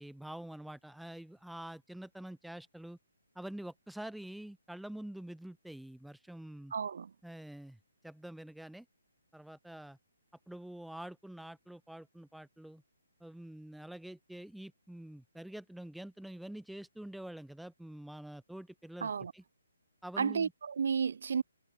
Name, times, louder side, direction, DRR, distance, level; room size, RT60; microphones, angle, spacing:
voice 1, 0.0-3.0 3.3-6.7 7.2-7.8 8.0-8.8 9.3-10.0 10.5-12.8 13.2-19.4 20.0-20.5, right 1 dB, ahead, 1.7 m, -46 dB
voice 2, 6.7-7.1 19.0-19.3 20.2-21.4, right 6 dB, 55° right, 1.4 m, -32 dB
figure-of-eight pair, 135°, 0 cm